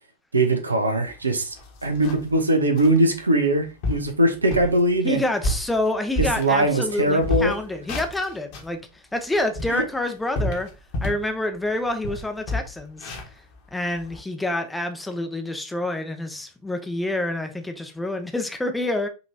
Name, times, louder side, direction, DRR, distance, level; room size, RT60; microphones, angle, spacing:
voice 1, 0.3-1.6 1.8-5.2 6.2-7.5 9.7-9.8, right 1 dB, 75° right, 0.7 m, -21 dB
sound 1, 1.1-1.2 1.6-2.3 2.8-3.0 3.5-3.6 3.8-4.1 4.5-4.8 5.2-6.9 7.2-8.7 9.2-11.3 11.7-11.8 12.0-14.2, left 1 dB, 45° left, 1.1 m, -30 dB
voice 2, 5.0-10.7 11.0-13.1 13.7-19.1, left 1 dB, 5° left, 0.6 m, -27 dB
5.4 x 2.9 x 2.6 m
figure-of-eight pair, 90°, 0 cm